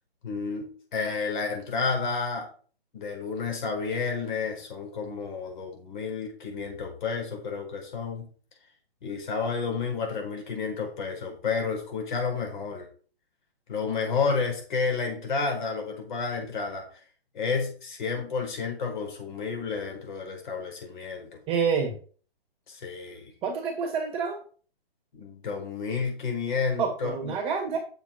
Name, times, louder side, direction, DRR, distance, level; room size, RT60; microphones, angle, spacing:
voice 1, 0.2-2.5 2.9-8.3 9.0-12.9 13.7-16.9 17.3-21.4 22.7-23.3 25.1-27.3, left 5 dB, 50° left, 2 dB, 4.7 m, -31 dB
voice 2, 21.5-22.0 23.4-24.4 26.8-27.8, right 6 dB, 20° right, 2 dB, 1.7 m, -27 dB
8.2 x 7.2 x 4.4 m, 0.42 s
hypercardioid pair, 145°, 30 cm